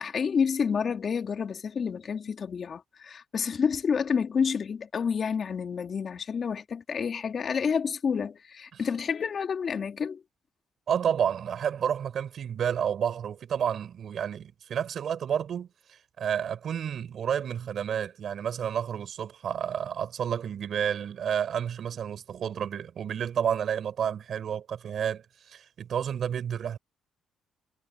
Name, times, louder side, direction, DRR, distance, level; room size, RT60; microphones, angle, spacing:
voice 1, 0.0-10.2, left 6 dB, 50° left, 3.3 m, -29 dB
voice 2, 10.9-26.8, right 8 dB, 60° right, 4.9 m, -30 dB
cardioid pair, 90°, 0 cm